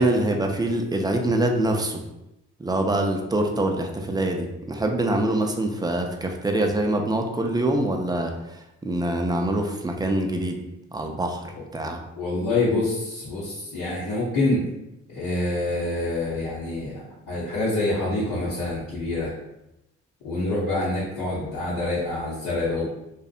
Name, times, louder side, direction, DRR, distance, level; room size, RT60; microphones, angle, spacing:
voice 1, 0.0-2.0 2.6-10.6 10.9-11.5 11.7-12.0, right 1 dB, 15° right, 3 dB, 0.3 m, -24 dB
voice 2, 12.2-14.6 15.1-19.3 20.2-22.9, left 2 dB, 80° left, -8 dB, 0.7 m, -26 dB
2.6 x 2.1 x 2.4 m, 0.90 s
supercardioid pair, 60°, 31 cm